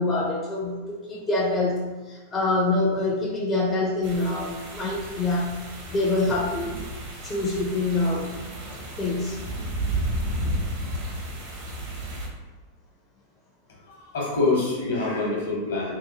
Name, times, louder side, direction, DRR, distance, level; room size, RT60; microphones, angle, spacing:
voice 1, 0.0-5.5 5.9-6.7 7.2-8.3 9.0-9.4, left 2 dB, 20° left, -3 dB, 0.4 m, -25 dB
sound 1, 4.0-12.3, right 1 dB, 45° right, 0.7 m, -33 dB
voice 2, 13.9-16.0, left 3 dB, 65° left, -3 dB, 0.9 m, -25 dB
2.8 x 2.1 x 2.8 m, 1.2 s
figure-of-eight pair, 90°, 0 cm